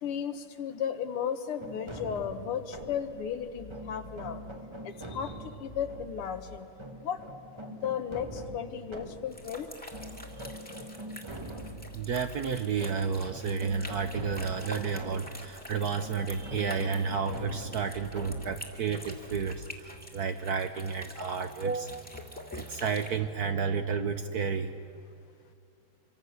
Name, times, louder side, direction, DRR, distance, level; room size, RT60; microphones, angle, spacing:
voice 1, 0.0-4.4 4.8-6.7 7.0-7.2 7.5-9.7, left 8 dB, 85° left, 8 dB, 2.1 m, -35 dB
sound 1, 1.6-20.3, right 1 dB, 20° right, 0.9 m, -45 dB
sound 2, 3.6-4.6 5.7-6.6 8.3-8.6 9.9-10.6 11.3-12.6 13.7-14.6 16.3-16.6 17.9-18.6 19.3-19.7, left 2 dB, 40° left, 1.9 m, -49 dB
sound 3, 9.3-23.1, left 1 dB, 5° left, 2.0 m, -46 dB
voice 2, 11.9-22.1 22.5-24.8, right 6 dB, 65° right, 8 dB, 1.0 m, -31 dB
26.0 x 24.0 x 6.5 m, 2.5 s
omnidirectional pair, 2.4 m